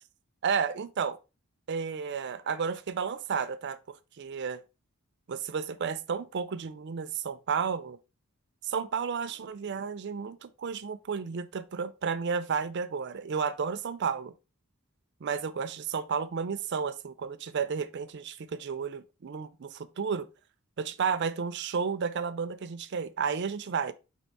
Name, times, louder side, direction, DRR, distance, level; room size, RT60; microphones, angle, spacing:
voice 1, 0.4-1.2 1.7-4.6 5.3-8.0 8.6-14.3 15.2-20.3 20.8-23.9, right 6 dB, 50° right, 0.4 m, -32 dB
4.5 x 2.9 x 4.1 m
head